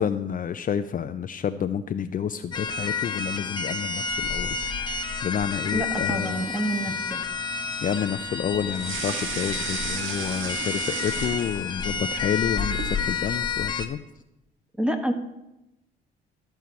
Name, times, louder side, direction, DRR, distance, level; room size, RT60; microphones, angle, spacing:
voice 1, 0.0-6.5 6.9-7.0 7.8-14.0, left 8 dB, 40° left, 9 dB, 0.5 m, -29 dB
sound 1, 2.5-13.9, left 5 dB, 20° left, 1.1 m, -30 dB
voice 2, 5.7-7.2 14.8-15.1, right 1 dB, 5° right, 5 dB, 1.5 m, -28 dB
sound 2, 8.7-11.9 12.3-13.0, right 5 dB, 70° right, 1.5 m, -33 dB
13.0 x 4.5 x 8.2 m, 0.92 s
cardioid pair, 95°, 21 cm